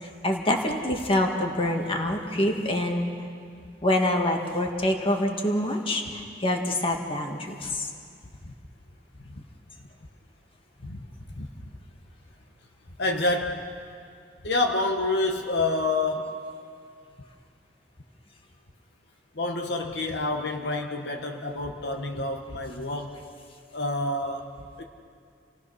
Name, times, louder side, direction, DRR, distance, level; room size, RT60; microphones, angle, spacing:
voice 1, 0.0-3.1 3.8-7.9, left 1 dB, 30° left, 2 dB, 2.0 m, -26 dB
voice 2, 11.3-11.7 13.0-13.7 14.4-16.4 19.3-23.2 23.7-24.8, left 2 dB, 70° left, 3 dB, 1.3 m, -28 dB
29.0 x 18.0 x 6.3 m, 2.3 s
head